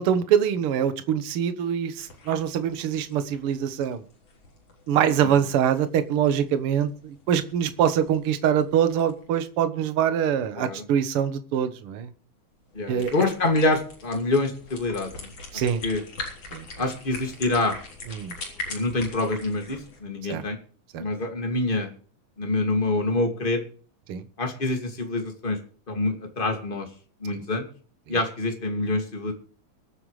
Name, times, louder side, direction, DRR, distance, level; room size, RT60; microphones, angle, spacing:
voice 1, 0.0-4.0 4.9-12.1 12.9-13.1 15.5-15.8 16.5-16.7 18.1-18.4 20.3-20.4 20.9-21.0 24.1-24.2 28.1-28.2, right 9 dB, 55° right, 10 dB, 1.8 m, -24 dB
sound 1, 2.0-9.3 12.7-20.0, left 3 dB, 50° left, 4.5 m, -42 dB
voice 2, 12.7-15.3 15.5-16.0 16.8-17.8 18.7-20.6 21.0-21.9 22.4-23.6 24.4-25.6 25.9-26.9 27.2-27.7 28.1-29.3, left 2 dB, 20° left, 4 dB, 2.2 m, -26 dB
23.5 x 9.2 x 3.3 m, 0.43 s
omnidirectional pair, 3.5 m